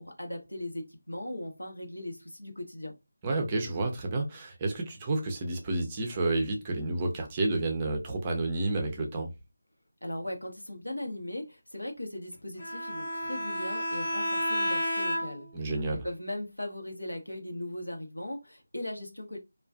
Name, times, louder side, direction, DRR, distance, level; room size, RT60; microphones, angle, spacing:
voice 1, 0.0-3.0 10.0-15.5 15.9-19.4, left 1 dB, 90° left, 1.0 m, -38 dB
voice 2, 3.2-9.3 15.5-16.1, right 2 dB, 20° right, 0.5 m, -30 dB
Bowed string instrument, 12.6-15.6, equal, 50° left, 1.0 m, -31 dB
2.4 x 2.3 x 2.3 m
figure-of-eight pair, 165°, 0 cm